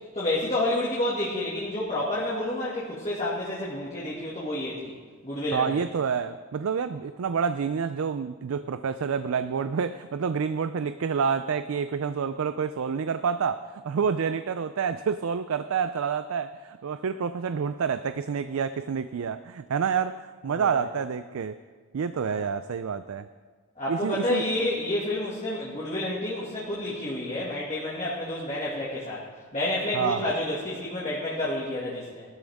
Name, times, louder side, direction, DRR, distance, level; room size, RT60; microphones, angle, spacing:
voice 1, 0.1-4.9 5.2-5.7 20.5-20.9 22.2-22.4 23.8-29.2 29.5-32.3, left 1 dB, 30° left, -7 dB, 2.0 m, -29 dB
voice 2, 5.5-21.5 21.9-23.3 23.9-24.4 29.9-30.3, right 6 dB, 70° right, 11 dB, 0.4 m, -28 dB
18.0 x 12.5 x 3.5 m, 1.5 s
head